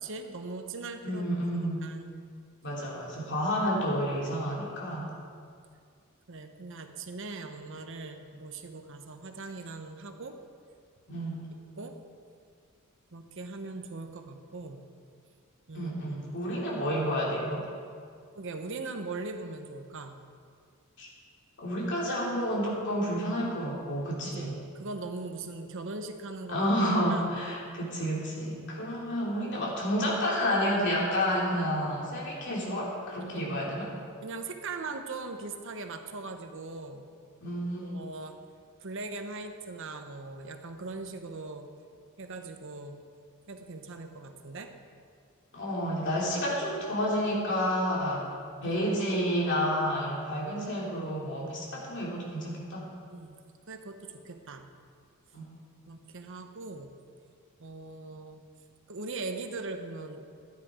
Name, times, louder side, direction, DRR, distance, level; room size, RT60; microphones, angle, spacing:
voice 1, 0.0-1.3 1.8-2.1 6.3-10.4 11.8-12.0 13.1-14.8 15.7-16.4 18.3-20.2 24.3-27.4 33.2-33.6 34.2-37.1 37.8-38.4 38.8-41.7 42.2-43.0 43.5-44.7 48.6-48.8 53.1-54.7 55.9-56.9 57.6-58.4 58.9-60.3, right 3 dB, 60° right, 6 dB, 0.9 m, -40 dB
voice 2, 1.0-1.9 2.6-5.1 11.1-11.5 15.7-17.6 21.0-21.1 21.6-24.6 26.5-33.9 37.4-37.9 45.5-48.3 48.6-52.9 55.3-55.5, equal, 55° left, -4 dB, 3.1 m, -30 dB
13.0 x 10.5 x 4.9 m, 2.2 s
head